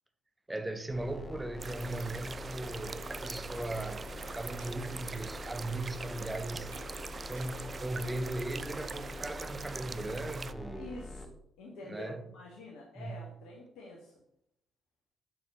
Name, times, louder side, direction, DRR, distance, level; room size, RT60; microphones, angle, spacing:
voice 1, 0.5-4.1 4.3-6.7 7.3-10.9 11.8-12.2 13.0-13.3, right 2 dB, 15° right, 1.3 m, -38 dB
sound 1, 0.9-11.3, left 2 dB, 25° left, 1.2 m, -45 dB
sound 2, 1.6-10.5, right 4 dB, 35° right, 0.4 m, -43 dB
sound 3, 3.6-9.4, right 3 dB, 70° right, 3.3 m, -58 dB
voice 2, 10.7-14.1, left 2 dB, 60° left, 2.0 m, -47 dB
6.8 x 6.8 x 6.3 m
figure-of-eight pair, 45°, 0 cm